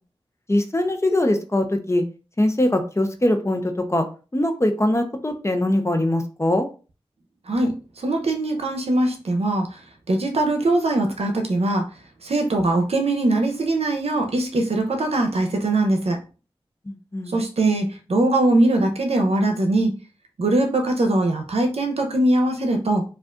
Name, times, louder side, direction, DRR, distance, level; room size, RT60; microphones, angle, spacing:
voice 1, 0.5-2.0 2.4-4.1 4.3-6.7 16.9-17.3, left 1 dB, 25° left, 6 dB, 0.7 m, -22 dB
voice 2, 8.0-9.7 10.1-11.8 12.2-16.2 17.3-19.9 20.4-23.0, right 2 dB, 80° right, 4 dB, 0.8 m, -21 dB
4.9 x 2.5 x 2.4 m, 0.34 s
cardioid pair, 45°, 10 cm